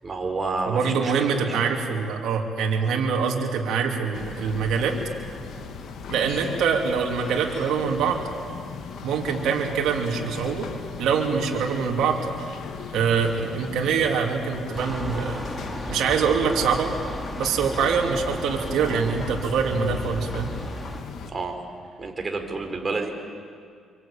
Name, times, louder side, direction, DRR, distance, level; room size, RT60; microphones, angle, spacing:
voice 1, 0.0-1.6 21.3-21.6 22.0-23.1, right 3 dB, 30° right, 4 dB, 4.7 m, -29 dB
voice 2, 0.7-5.0 6.1-8.2 9.0-10.7 11.0-12.2 12.9-15.5 15.9-16.9 17.4-20.5, right 6 dB, 80° right, 1 dB, 3.5 m, -24 dB
sound 1, 4.1-21.3, left 6 dB, 70° left, 2.8 m, -38 dB
sound 2, 14.7-21.0, equal, 5° left, 3.2 m, -35 dB
27.0 x 24.0 x 9.1 m, 2.2 s
cardioid pair, 90°, 0 cm